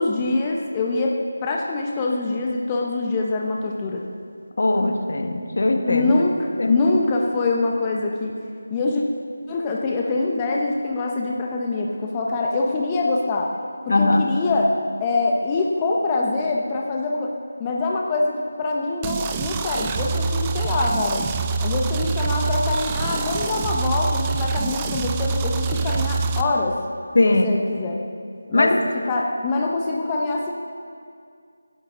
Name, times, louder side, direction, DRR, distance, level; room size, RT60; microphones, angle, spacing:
voice 1, 0.0-4.1 5.9-8.4 8.7-9.0 9.5-13.5 13.9-17.3 17.6-21.2 21.6-26.8 27.2-28.0 28.5-28.7 29.1-30.5, left 3 dB, 20° left, -1 dB, 0.8 m, -24 dB
voice 2, 4.6-6.1 6.6-6.8 13.9-14.2 27.1-27.5 28.5-28.8, left 2 dB, 60° left, 4 dB, 1.5 m, -19 dB
sound 1, 19.0-26.4, right 5 dB, 15° right, 0.6 m, -25 dB
20.5 x 11.0 x 3.8 m, 2.3 s
figure-of-eight pair, 165°, 0 cm